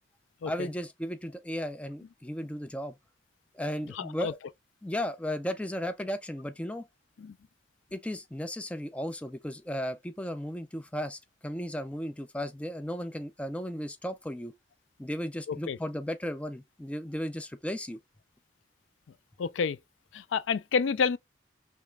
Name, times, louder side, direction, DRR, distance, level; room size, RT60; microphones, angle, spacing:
voice 1, 0.5-3.0 3.5-4.4 4.8-6.9 7.9-14.5 15.0-18.0, equal, 5° left, 0.3 m, -35 dB
voice 2, 3.9-4.3 7.2-7.3 15.5-15.8 19.4-19.8 20.1-21.2, left 5 dB, 85° left, 0.4 m, -29 dB
5.0 x 3.2 x 2.2 m
head